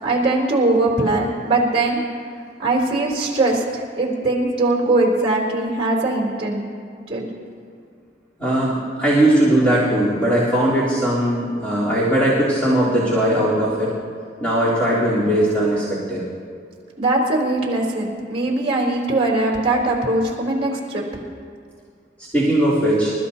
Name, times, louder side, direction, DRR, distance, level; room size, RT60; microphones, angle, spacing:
voice 1, 0.0-2.0 2.6-6.6 7.1-7.3 17.0-21.0, right 2 dB, 35° right, -3 dB, 3.5 m, -20 dB
voice 2, 8.4-13.9 14.4-16.2 22.3-23.1, right 1 dB, 10° left, -11 dB, 3.6 m, -19 dB
28.0 x 14.5 x 2.8 m, 2.2 s
head